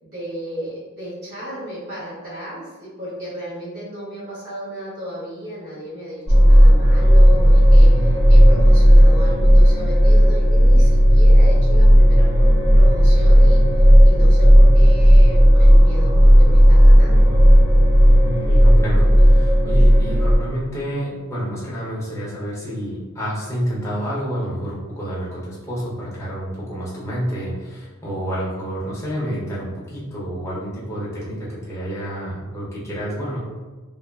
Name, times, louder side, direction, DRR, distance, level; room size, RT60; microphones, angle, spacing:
voice 1, 0.0-17.3, equal, 45° right, -9 dB, 1.3 m, -34 dB
sound 1, 6.3-20.4, equal, 15° right, 0.9 m, -11 dB
voice 2, 18.4-33.4, equal, 15° left, -8 dB, 0.7 m, -29 dB
3.0 x 2.0 x 2.3 m, 1.3 s
head